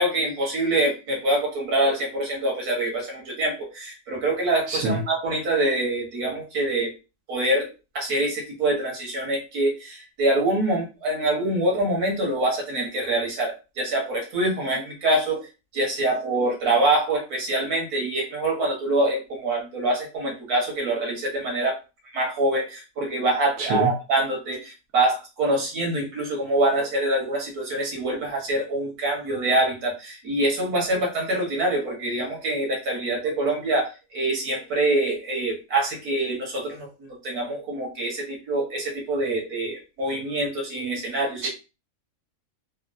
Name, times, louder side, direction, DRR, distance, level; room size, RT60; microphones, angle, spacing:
voice 1, 0.0-6.9 7.3-7.7 7.9-15.5 15.7-21.8 22.1-41.5, right 1 dB, 90° right, -1 dB, 1.7 m, -25 dB
voice 2, 4.7-5.0 23.6-23.9 41.4-41.5, right 2 dB, 70° right, 1 dB, 1.1 m, -25 dB
3.7 x 2.2 x 2.5 m, 0.29 s
omnidirectional pair, 1.5 m